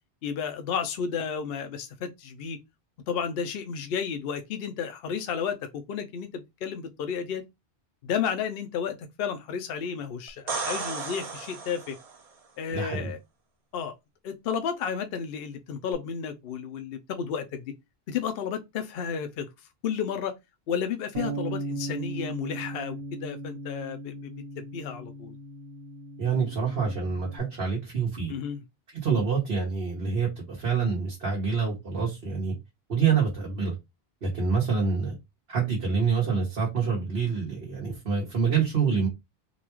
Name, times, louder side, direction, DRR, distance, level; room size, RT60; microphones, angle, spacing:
voice 1, 0.2-2.6 3.1-7.4 8.0-12.0 12.6-13.2 13.7-13.9 14.2-17.7 18.1-19.5 19.8-20.3 20.7-25.4 28.3-28.6, left 7 dB, 70° left, 0.8 m, -32 dB
sound 1, 10.3-12.2 15.9-16.0, right 4 dB, 40° right, 0.6 m, -34 dB
voice 2, 12.7-13.1 26.2-28.3 28.9-32.5 32.9-33.7 34.2-35.2 35.5-39.1, right 5 dB, 75° right, 1.4 m, -26 dB
Bass guitar, 21.1-27.4, right 2 dB, 60° right, 1.2 m, -37 dB
4.0 x 2.3 x 2.9 m
omnidirectional pair, 1.0 m